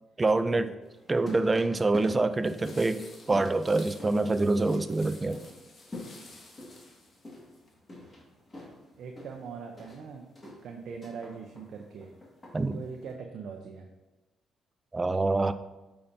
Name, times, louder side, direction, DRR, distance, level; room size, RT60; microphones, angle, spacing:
voice 1, 0.2-0.7 1.1-5.4 12.5-12.8 14.9-15.5, right 2 dB, 25° right, 0.4 m, -26 dB
sound 1, 0.8-13.1, left 1 dB, 25° left, 2.0 m, -47 dB
sound 2, 2.4-7.7, left 2 dB, 45° left, 1.6 m, -52 dB
voice 2, 9.0-10.3 10.6-12.1 12.7-13.9, right 5 dB, 70° right, 0.7 m, -41 dB
8.5 x 5.8 x 2.8 m
cardioid pair, 90°, 0 cm